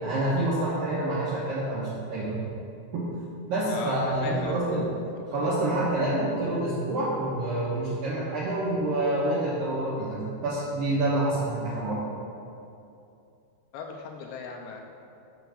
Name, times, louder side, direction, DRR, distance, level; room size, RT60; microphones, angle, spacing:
voice 1, 0.0-2.4 2.9-3.1 3.5-4.9 5.3-12.0, right 1 dB, 70° right, -8 dB, 2.1 m, -27 dB
voice 2, 4.2-4.9 5.3-5.5 13.7-14.8, left 4 dB, 85° left, 2 dB, 2.8 m, -38 dB
6.9 x 5.8 x 6.3 m, 2.6 s
omnidirectional pair, 5.4 m